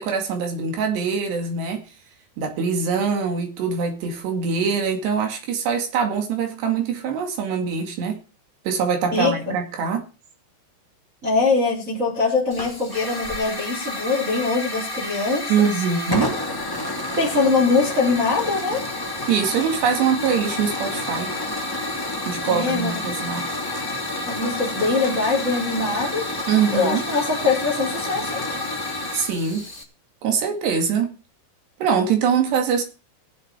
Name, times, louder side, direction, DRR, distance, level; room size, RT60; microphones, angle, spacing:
voice 1, 0.0-1.8 2.4-8.2 8.7-10.1 15.5-16.4 19.3-21.3 22.3-23.5 26.5-27.0 29.1-29.7 30.2-31.2 31.8-32.8, right 6 dB, 60° right, 4.0 m, -23 dB
voice 2, 9.1-9.6 11.2-15.7 17.2-18.8 22.4-23.0 24.3-26.3 26.7-28.4, left 4 dB, 15° right, 3.8 m, -22 dB
Hiss / Fire, 12.5-29.8, left 2 dB, 10° left, 1.0 m, -29 dB
20.0 x 7.7 x 4.7 m
omnidirectional pair, 6.0 m